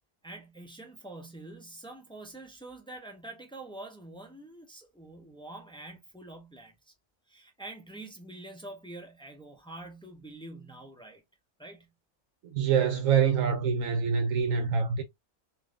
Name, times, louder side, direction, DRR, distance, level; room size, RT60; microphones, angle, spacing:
voice 1, 0.2-6.9 7.3-11.2 11.6-11.9, right 2 dB, 5° left, 0.5 m, -46 dB
voice 2, 12.5-15.0, right 7 dB, 75° right, 1.0 m, -25 dB
3.6 x 2.7 x 2.3 m
omnidirectional pair, 1.4 m